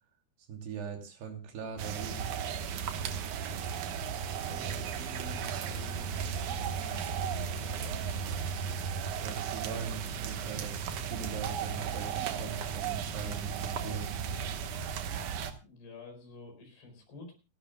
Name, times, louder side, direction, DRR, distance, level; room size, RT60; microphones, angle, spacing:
voice 1, 0.5-2.3 9.2-14.1, right 6 dB, 90° right, 3 dB, 4.9 m, -41 dB
sound 1, 1.8-15.5, right 7 dB, 65° right, 2.2 m, -35 dB
voice 2, 4.5-8.4 15.6-17.3, left 3 dB, 75° left, 5 dB, 6.8 m, -49 dB
28.5 x 12.0 x 2.2 m, 0.29 s
omnidirectional pair, 4.6 m